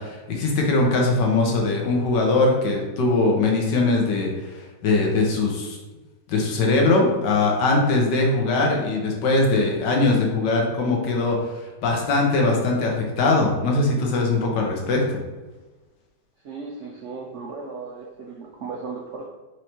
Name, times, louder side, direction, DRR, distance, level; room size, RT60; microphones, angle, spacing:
voice 1, 0.0-5.8 6.3-11.5 11.8-15.1, left 3 dB, 90° left, 0 dB, 1.5 m, -21 dB
voice 2, 16.4-19.3, right 4 dB, 80° right, -1 dB, 0.6 m, -36 dB
4.4 x 3.1 x 2.9 m, 1.2 s
omnidirectional pair, 1.8 m